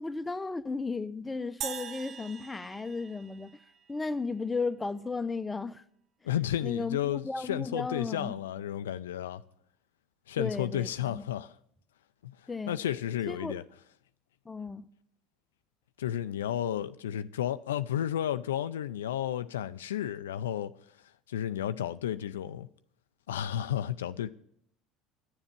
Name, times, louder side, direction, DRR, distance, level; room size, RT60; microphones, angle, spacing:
voice 1, 0.0-3.6 3.9-5.8 6.6-8.3 10.4-11.2 12.5-12.8 13.3-13.6 14.5-14.8, left 4 dB, 15° left, 0.7 m, -34 dB
sound 1, 1.6-4.0, right 9 dB, 50° right, 0.6 m, -42 dB
voice 2, 6.2-9.4 10.3-11.6 12.2-12.4 12.7-13.6 16.0-20.7 21.3-22.7 23.3-24.3, left 11 dB, 80° left, 0.4 m, -32 dB
10.5 x 7.3 x 8.9 m
hypercardioid pair, 70°, 0 cm